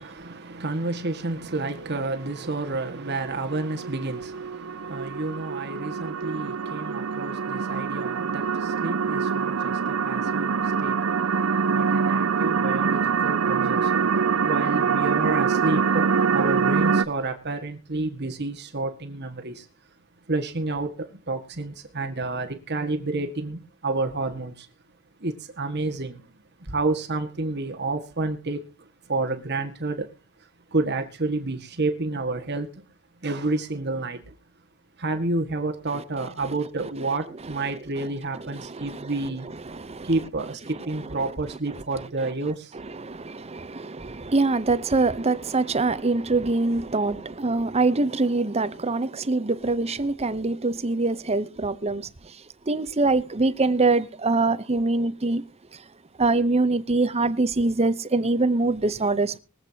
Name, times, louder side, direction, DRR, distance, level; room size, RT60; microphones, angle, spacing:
voice 1, 0.0-11.1 11.7-13.9 14.4-19.7 20.3-24.7 25.2-26.3 26.6-28.7 29.1-30.1 30.7-32.7 33.2-34.3 35.0-39.5 40.0-42.7, right 2 dB, 55° right, 1.8 m, -30 dB
sound 1, 1.8-17.0, right 6 dB, 85° right, 0.6 m, -25 dB
voice 2, 37.6-38.1 38.5-39.1 39.7-40.1 42.8-52.3 52.7-55.4 55.7-55.8 56.2-59.4, right 3 dB, 30° right, 0.8 m, -24 dB
24.0 x 8.1 x 2.8 m
head